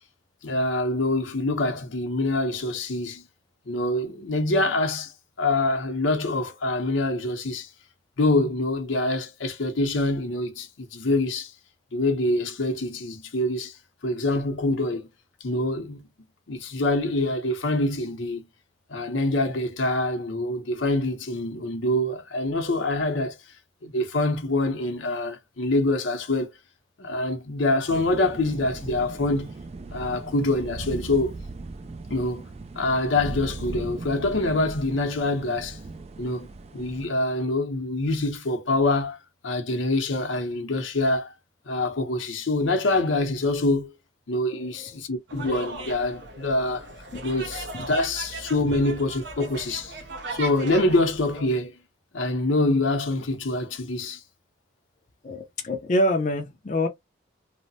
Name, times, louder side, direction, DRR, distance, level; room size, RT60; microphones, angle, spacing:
voice 1, 0.4-3.2 3.7-7.7 8.2-11.5 11.9-13.8 14.0-15.1 15.4-16.1 16.5-18.5 18.9-23.4 23.8-26.5 27.0-29.5 29.9-31.4 32.1-32.4 32.8-35.8 36.2-39.2 39.4-41.3 41.7-43.9 44.3-46.9 47.2-50.0 50.3-51.8 52.1-54.2, left 2 dB, 85° left, 0.7 m, -25 dB
sound 1, 27.9-37.1, right 3 dB, 35° right, 0.3 m, -38 dB
voice 2, 44.6-44.9 47.1-47.2 47.7-47.9 55.2-56.9, left 1 dB, 40° left, 0.5 m, -26 dB
sound 2, 45.3-51.5, right 2 dB, 65° right, 0.7 m, -38 dB
3.1 x 2.0 x 2.7 m
head